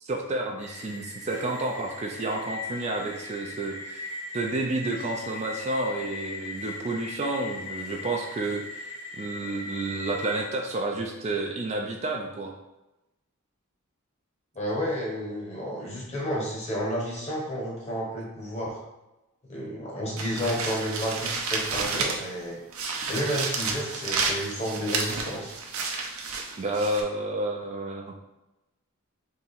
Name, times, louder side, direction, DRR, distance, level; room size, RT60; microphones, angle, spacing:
voice 1, 0.0-12.5 26.6-28.2, right 2 dB, 30° right, 1 dB, 0.4 m, -30 dB
sound 1, 0.6-10.5, left 3 dB, 75° left, 0.9 m, -39 dB
voice 2, 14.5-18.8 19.5-22.6 23.1-25.5, equal, 30° left, -3 dB, 1.2 m, -31 dB
sound 2, 20.2-22.4 22.7-27.0, right 4 dB, 70° right, 0.6 m, -31 dB
3.6 x 2.8 x 4.2 m, 0.97 s
head